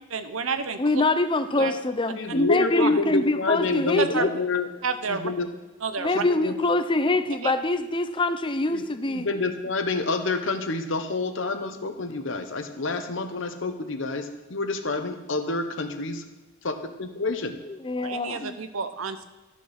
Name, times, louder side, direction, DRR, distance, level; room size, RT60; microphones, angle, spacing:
voice 1, 0.1-0.8 1.6-1.7 2.8-2.9 4.0-4.2 4.8-5.3 5.8-6.2 7.4-7.5 18.0-19.2, right 5 dB, 85° right, 9 dB, 0.9 m, -29 dB
voice 2, 0.8-4.3 6.0-9.3 17.7-18.6, left 2 dB, 25° left, 10 dB, 0.5 m, -24 dB
voice 3, 2.1-4.7 5.1-5.5 6.1-6.6 8.7-16.2 16.6-17.6, left 3 dB, 65° left, 7 dB, 1.0 m, -28 dB
13.0 x 6.2 x 5.9 m, 1.2 s
head